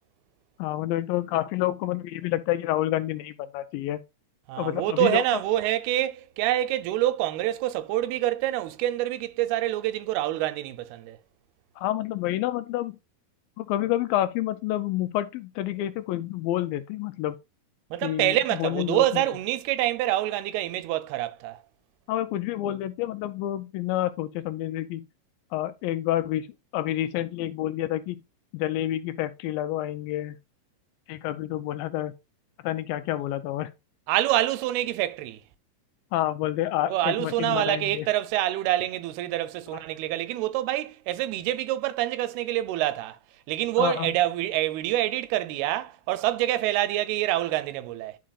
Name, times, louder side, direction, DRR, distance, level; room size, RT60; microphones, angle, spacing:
voice 1, 0.6-4.0 4.6-5.2 11.8-13.0 13.6-17.4 18.0-19.2 22.1-25.1 25.5-26.5 26.7-28.2 28.5-30.4 31.1-32.1 32.6-33.7 36.1-38.1 43.8-44.1, left 14 dB, 80° left, 2.1 m, -28 dB
voice 2, 4.5-11.2 17.9-21.6 34.1-35.4 36.8-43.2 43.5-48.2, right 14 dB, 90° right, 2.7 m, -26 dB
11.5 x 4.8 x 2.3 m
omnidirectional pair, 4.4 m